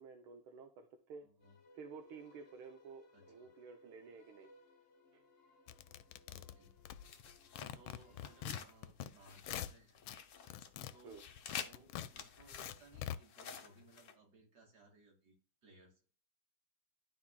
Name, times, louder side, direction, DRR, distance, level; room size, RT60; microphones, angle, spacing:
voice 1, 0.0-1.3 1.7-4.5 5.1-5.2 8.2-8.5 11.0-11.2, right 5 dB, 85° right, 5 dB, 1.6 m, -53 dB
voice 2, 1.2-1.6 3.1-3.5 6.3-6.7 7.7-10.0 10.6-11.3 11.6-16.1, right 2 dB, 55° right, 0 dB, 2.6 m, -64 dB
sound 1, 1.4-8.6, left 2 dB, 40° left, 1.2 m, -65 dB
sound 2, 5.7-7.3 7.6-9.1 9.4-10.2 10.5-13.2, left 11 dB, 80° left, 1.3 m, -45 dB
sound 3, 7.0-8.7 9.0-10.7 10.9-14.1, left 7 dB, 60° left, 0.8 m, -49 dB
12.0 x 4.3 x 2.2 m, 0.40 s
omnidirectional pair, 2.3 m